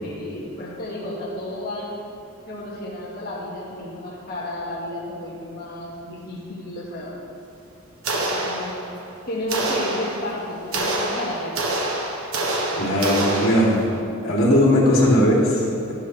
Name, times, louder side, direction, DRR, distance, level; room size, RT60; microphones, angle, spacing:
voice 1, 0.0-1.9 2.5-7.1 8.4-8.7 9.3-11.5, left 1 dB, 45° left, -8 dB, 2.0 m, -32 dB
sound 1, 8.0-9.1 9.5-14.0, right 2 dB, 85° right, 1.3 m, -27 dB
voice 2, 12.8-13.8 14.2-15.9, left 1 dB, 70° left, -5 dB, 3.0 m, -18 dB
12.5 x 11.0 x 3.4 m, 2.5 s
head